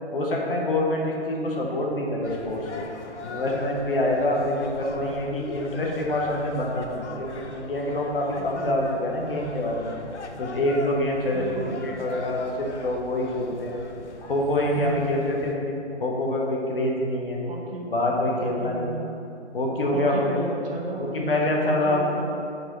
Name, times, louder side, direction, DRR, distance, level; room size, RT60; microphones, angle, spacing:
voice 1, 0.1-2.8 3.2-10.0 10.4-13.8 14.2-17.4 17.9-19.0 19.5-20.3 21.0-22.1, left 1 dB, 50° left, -1 dB, 1.0 m, -26 dB
sound 1, 2.2-15.5, left 4 dB, 75° left, 0.7 m, -40 dB
voice 2, 8.4-8.7 11.3-11.7 14.8-15.1 17.5-17.9 18.4-19.1 19.9-21.3 21.6-22.4, right 2 dB, 55° right, -1 dB, 1.0 m, -34 dB
7.1 x 4.8 x 3.0 m, 2.5 s
hypercardioid pair, 160°, 35 cm